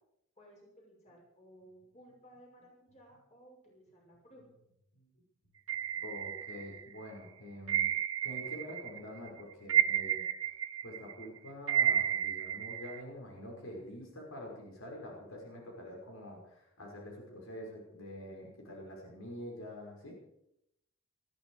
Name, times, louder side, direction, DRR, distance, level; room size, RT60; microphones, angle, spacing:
voice 1, 0.4-4.4, equal, 35° left, -2 dB, 6.4 m, -58 dB
sound 1, 5.7-7.0 7.7-9.0 9.3-13.0, right 10 dB, 65° right, 0.7 m, -32 dB
voice 2, 6.0-7.9 8.2-10.2 10.8-20.2, left 1 dB, 85° left, -1 dB, 5.7 m, -46 dB
20.0 x 14.0 x 4.9 m, 0.77 s
head